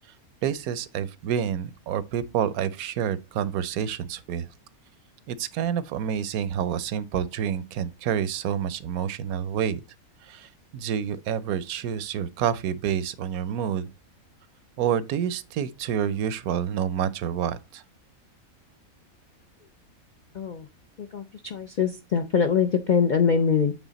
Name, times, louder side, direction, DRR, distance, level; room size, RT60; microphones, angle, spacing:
voice 1, 0.4-4.5 5.3-9.8 10.2-13.9 14.8-17.8, right 9 dB, 80° right, 1.1 m, -28 dB
voice 2, 20.3-20.7 21.0-23.7, left 6 dB, 65° left, 0.4 m, -23 dB
8.3 x 3.6 x 4.0 m
omnidirectional pair, 1.5 m